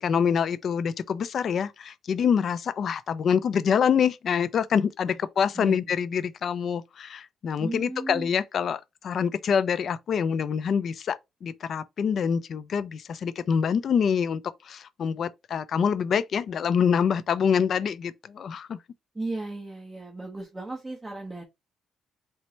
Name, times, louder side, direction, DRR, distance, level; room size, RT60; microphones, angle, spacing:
voice 1, 0.0-18.8, left 7 dB, 60° left, 0.4 m, -26 dB
voice 2, 5.5-6.0 7.6-8.3 19.1-21.4, right 2 dB, 15° right, 0.9 m, -35 dB
4.4 x 2.1 x 3.9 m
cardioid pair, 90°, 0 cm